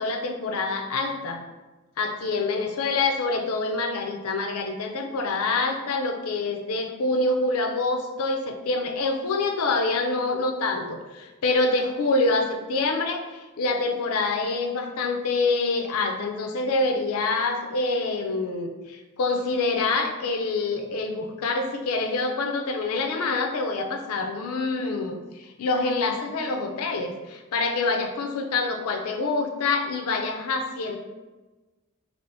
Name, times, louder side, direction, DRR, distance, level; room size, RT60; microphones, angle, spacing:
voice 1, 0.0-1.4 2.0-31.0, left 3 dB, 80° left, 4 dB, 0.4 m, -26 dB
2.7 x 2.4 x 3.3 m, 1.2 s
head